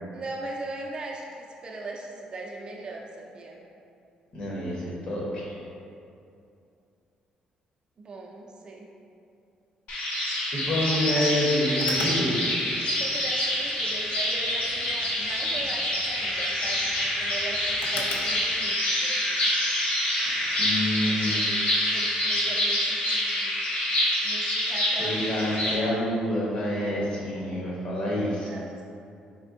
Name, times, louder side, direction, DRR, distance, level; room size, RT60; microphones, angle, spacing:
voice 1, 0.1-3.6 8.0-8.9 12.8-19.5 20.9-23.6 24.2-26.1 28.2-28.7, right 2 dB, 35° right, -1 dB, 0.4 m, -40 dB
voice 2, 4.3-5.6 10.4-12.5 20.2-21.4 25.0-28.5, left 1 dB, 45° left, -5 dB, 1.0 m, -28 dB
sound 1, 9.9-25.7, left 1 dB, 70° left, 0.8 m, -27 dB
sound 2, 11.8-18.4, left 2 dB, 90° left, 0.4 m, -40 dB
4.3 x 3.3 x 2.5 m, 2.6 s
cardioid pair, 135°, 3 cm